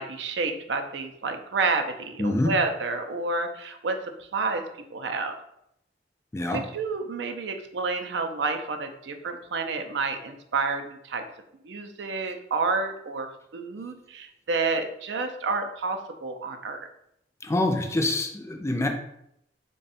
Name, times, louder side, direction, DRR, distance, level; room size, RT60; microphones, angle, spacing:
voice 1, 0.0-4.0 4.3-4.6 4.9-5.4 6.5-11.2 11.6-13.3 13.5-16.8, right 4 dB, 80° right, 6 dB, 0.5 m, -29 dB
voice 2, 2.2-2.6 6.3-6.7 17.4-18.9, left 1 dB, 15° left, 4 dB, 0.4 m, -25 dB
3.5 x 2.3 x 4.0 m, 0.77 s
head